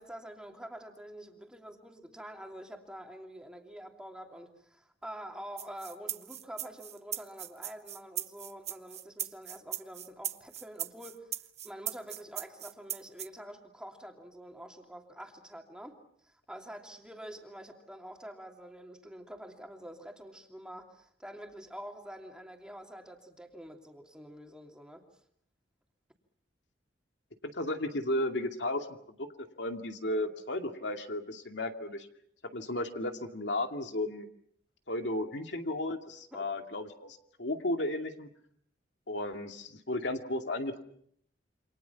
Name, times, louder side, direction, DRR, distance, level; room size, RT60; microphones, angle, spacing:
voice 1, 0.0-11.4 11.6-16.0 16.2-25.0 36.3-36.5, equal, 5° right, 2 dB, 2.9 m, -47 dB
sound 1, 5.6-13.3, right 11 dB, 40° right, 1.0 m, -38 dB
voice 2, 27.4-32.1 32.5-34.3 34.9-38.3 39.1-40.8, left 1 dB, 80° left, 4 dB, 2.4 m, -34 dB
28.5 x 26.5 x 5.9 m, 0.68 s
head